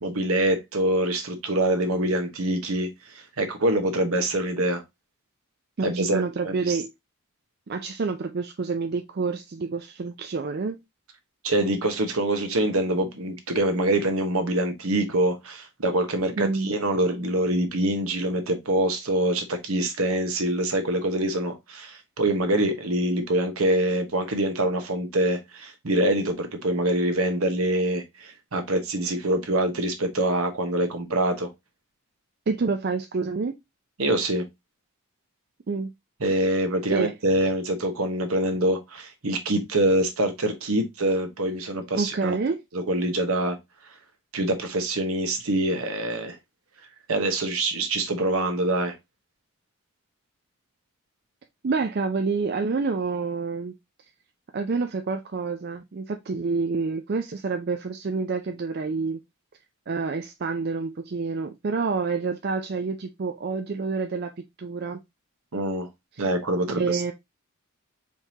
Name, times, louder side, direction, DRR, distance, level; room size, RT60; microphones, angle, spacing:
voice 1, 0.0-2.9 3.1-4.8 5.8-6.8 11.4-31.5 34.0-34.4 36.2-42.3 42.7-43.6 44.3-46.4 47.1-48.9 65.5-65.9 66.2-67.0, right 1 dB, 70° right, 1.0 m, -25 dB
voice 2, 5.8-6.9 7.7-10.8 16.4-16.7 32.5-33.5 35.7-35.9 36.9-37.1 42.0-42.6 51.6-53.7 54.5-59.2 59.9-64.3 64.6-65.0 66.1-66.2 66.8-67.1, right 4 dB, 45° right, 0.4 m, -28 dB
4.5 x 3.7 x 2.7 m
head